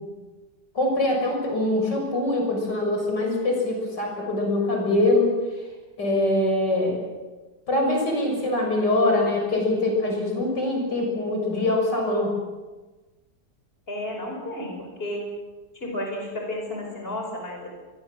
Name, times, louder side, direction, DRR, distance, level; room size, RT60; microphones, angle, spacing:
voice 1, 0.7-5.3 6.0-7.0 7.7-12.3, left 2 dB, 75° left, 1 dB, 7.3 m, -23 dB
voice 2, 13.9-14.7 15.0-15.3 15.7-17.7, left 1 dB, 30° left, 2 dB, 5.3 m, -32 dB
24.0 x 22.5 x 7.6 m, 1.2 s
omnidirectional pair, 1.9 m